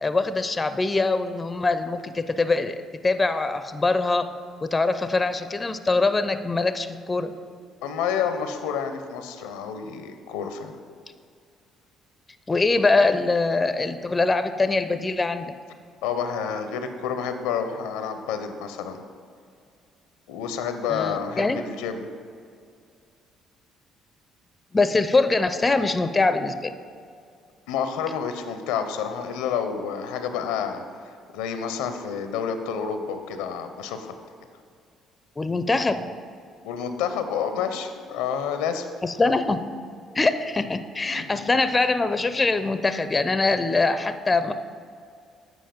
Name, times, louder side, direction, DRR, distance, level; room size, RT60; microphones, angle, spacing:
voice 1, 0.0-4.3 4.6-7.3 12.5-15.5 20.9-21.6 24.7-26.7 35.4-36.0 39.0-39.6 40.1-44.5, left 3 dB, 25° left, 11 dB, 0.4 m, -23 dB
voice 2, 7.8-10.7 16.0-19.0 20.3-22.1 27.7-30.8 31.3-34.1 36.6-38.9 41.1-41.5, left 7 dB, 85° left, 8 dB, 0.5 m, -29 dB
7.9 x 4.9 x 5.1 m, 2.3 s
supercardioid pair, 60°, 0 cm